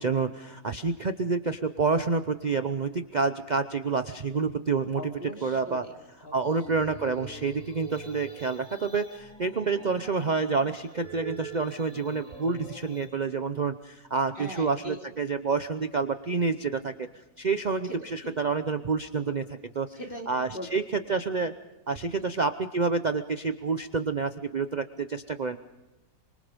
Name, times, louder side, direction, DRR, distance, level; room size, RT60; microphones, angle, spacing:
voice 1, 0.0-5.0 5.4-5.8 6.3-17.1 17.4-19.4 19.8-19.9 20.3-20.8 21.1-21.5 21.9-25.6, right 4 dB, 50° right, 9 dB, 0.5 m, -28 dB
voice 2, 4.9-5.9 6.2-6.6 14.4-15.0 17.8-18.0 18.2-18.3 19.3-19.5 19.9-20.7 22.1-22.3, equal, 25° left, 2 dB, 3.7 m, -41 dB
sound 1, 6.4-13.1, right 4 dB, 5° left, 5.4 m, -45 dB
27.0 x 25.5 x 5.2 m, 1.0 s
omnidirectional pair, 2.0 m